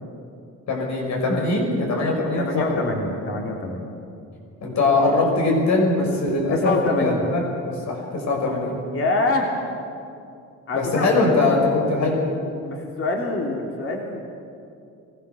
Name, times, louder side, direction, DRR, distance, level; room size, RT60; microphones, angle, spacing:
voice 1, 0.7-2.9 4.6-8.8 10.7-12.3, left 2 dB, 65° left, 0 dB, 6.1 m, -22 dB
voice 2, 2.4-3.9 6.5-7.3 8.9-9.5 10.7-11.1 12.6-14.2, left 2 dB, 45° left, 0 dB, 3.2 m, -25 dB
23.0 x 17.5 x 7.1 m, 2.5 s
cardioid pair, 90°, 30 cm